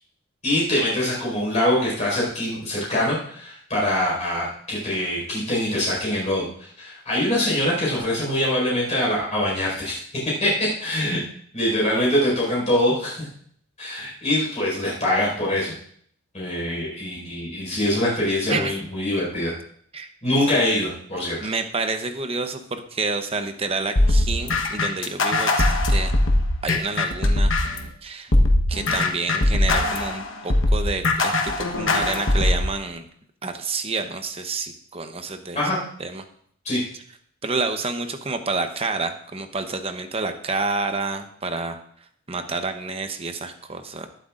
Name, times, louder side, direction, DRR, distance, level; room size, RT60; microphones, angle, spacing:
voice 1, 0.4-10.0 10.4-11.2 11.5-13.3 13.8-15.7 16.3-19.5 20.2-21.4 35.5-35.8 36.6-36.8, left 1 dB, 30° left, -4 dB, 4.8 m, -23 dB
voice 2, 21.4-26.1 26.6-27.5 28.0-28.3 28.7-33.0 33.4-35.6 36.0-36.2 37.4-41.8 42.3-44.1, right 3 dB, 25° right, 7 dB, 0.8 m, -29 dB
sound 1, 24.0-27.9 28.3-32.7, left 2 dB, 60° left, 1.2 m, -20 dB
21.0 x 7.9 x 2.5 m, 0.63 s
head